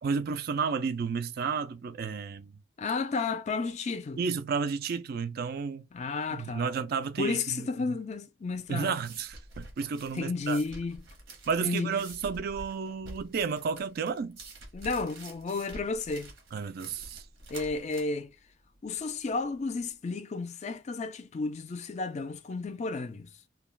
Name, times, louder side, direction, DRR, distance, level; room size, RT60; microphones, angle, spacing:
voice 1, 0.0-2.6 4.2-5.8 6.3-7.7 8.7-10.6 11.5-14.4 16.5-17.2, right 5 dB, 50° right, 0.3 m, -32 dB
voice 2, 2.8-4.2 5.9-6.7 7.2-8.9 10.2-11.1 11.6-12.0 14.7-16.3 17.5-18.3 18.8-23.3, left 4 dB, 35° left, 0.4 m, -32 dB
sound 1, 8.5-19.9, right 2 dB, 80° right, 1.0 m, -48 dB
2.3 x 2.3 x 3.1 m
head